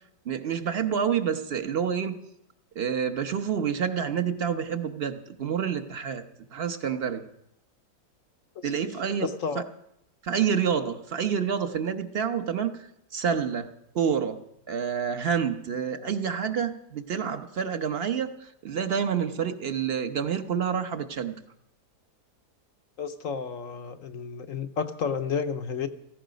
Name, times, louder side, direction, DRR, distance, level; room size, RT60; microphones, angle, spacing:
voice 1, 0.2-2.1 2.7-6.3 6.5-7.3 8.6-9.3 9.5-9.6 10.2-13.7 13.9-14.4 14.7-21.4, right 7 dB, 45° right, 9 dB, 1.0 m, -28 dB
voice 2, 9.2-9.6 23.0-25.9, left 6 dB, 60° left, 9 dB, 1.0 m, -31 dB
17.0 x 15.0 x 5.1 m, 0.78 s
omnidirectional pair, 1.8 m